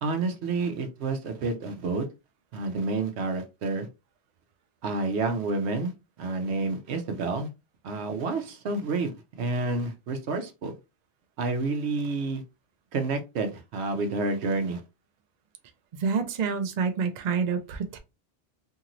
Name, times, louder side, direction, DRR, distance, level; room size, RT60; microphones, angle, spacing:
voice 1, 0.0-2.1 2.5-3.9 4.8-5.9 6.2-7.5 7.8-10.7 11.4-12.4 12.9-14.8, right 3 dB, 75° right, 0.9 m, -29 dB
voice 2, 16.0-18.0, right 5 dB, 55° right, 0.5 m, -27 dB
2.9 x 2.8 x 2.5 m
omnidirectional pair, 1.1 m